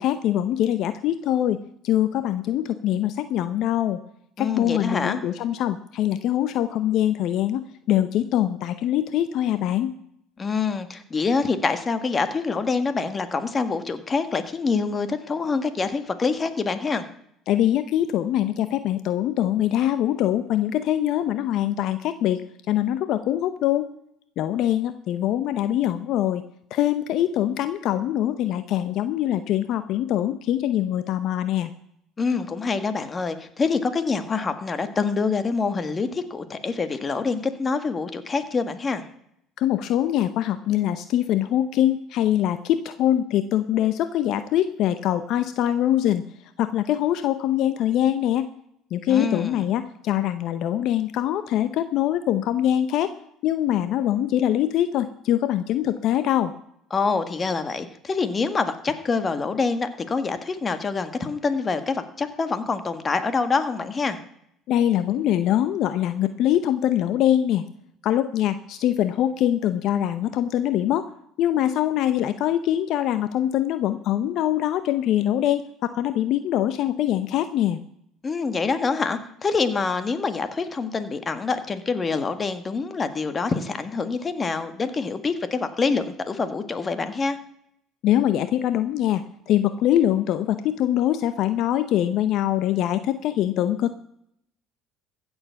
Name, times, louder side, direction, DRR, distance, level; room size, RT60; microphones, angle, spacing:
voice 1, 0.0-1.6 1.8-4.0 4.4-9.9 17.5-22.4 22.7-23.9 24.4-26.4 26.7-31.7 39.6-46.2 46.6-48.5 48.9-53.1 53.4-56.5 64.7-67.6 68.0-71.1 71.4-77.8 88.0-94.0, left 11 dB, 65° left, 11 dB, 0.7 m, -23 dB
voice 2, 4.4-5.2 10.4-17.0 32.2-39.0 49.1-49.6 56.9-64.2 78.2-87.4, left 4 dB, 30° left, 10 dB, 1.6 m, -26 dB
15.5 x 7.2 x 7.0 m, 0.72 s
supercardioid pair, 85°, 0 cm